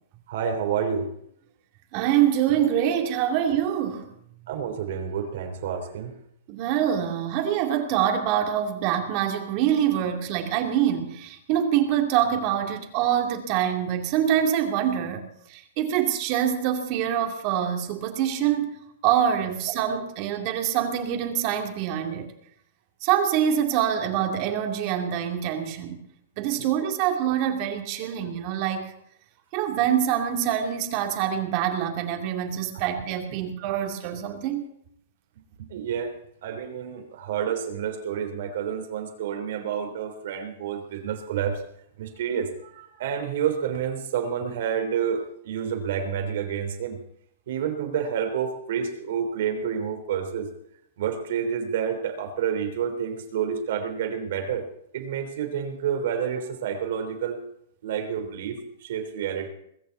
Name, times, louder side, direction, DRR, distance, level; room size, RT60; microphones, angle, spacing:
voice 1, 0.3-1.1 4.5-6.1 35.6-36.1 36.4-41.6 42.0-47.0 47.5-50.5 51.0-54.6 54.9-57.4 57.8-59.5, right 8 dB, 65° right, 4 dB, 3.6 m, -29 dB
voice 2, 1.9-4.1 6.5-18.7 19.0-22.3 23.0-26.0 26.4-28.9 29.5-34.6, right 10 dB, 45° right, 4 dB, 2.5 m, -25 dB
21.0 x 7.3 x 8.3 m, 0.74 s
hypercardioid pair, 140°, 0 cm